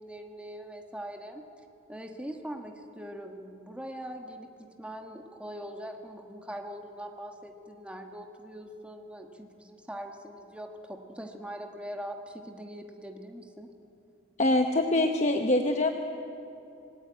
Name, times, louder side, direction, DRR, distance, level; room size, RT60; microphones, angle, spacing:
voice 1, 0.0-1.5 1.9-13.7, equal, 5° right, 3 dB, 1.4 m, -42 dB
voice 2, 14.4-15.9, left 2 dB, 35° left, 5 dB, 0.9 m, -24 dB
26.5 x 19.5 x 9.3 m, 2.9 s
head